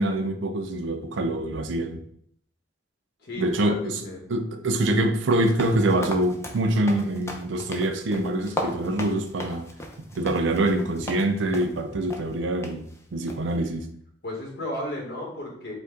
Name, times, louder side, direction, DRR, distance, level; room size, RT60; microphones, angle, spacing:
voice 1, 0.0-2.0 3.4-4.0 4.3-9.7 10.1-12.8 13.1-13.9, right 1 dB, 85° right, 6 dB, 0.5 m, -25 dB
voice 2, 3.2-4.2 14.2-15.7, left 1 dB, 60° left, -2 dB, 1.4 m, -34 dB
sound 1, 5.3-11.3 11.5-11.8 12.1-12.2 12.6-12.8 13.3-13.5, left 1 dB, 15° left, 0.5 m, -36 dB
5.1 x 2.2 x 3.7 m, 0.65 s
head